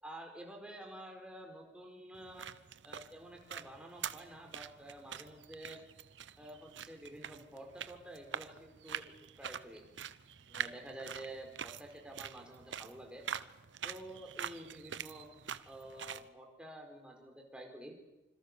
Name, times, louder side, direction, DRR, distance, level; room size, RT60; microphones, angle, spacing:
voice 1, 0.0-2.5 2.8-5.8 6.4-9.0 9.4-9.8 10.5-13.2 13.8-15.3 15.6-17.9, right 1 dB, 5° right, 1 dB, 4.9 m, -49 dB
sound 1, 2.1-16.3, right 8 dB, 85° right, 0.9 m, -45 dB
26.5 x 26.0 x 7.0 m, 0.99 s
head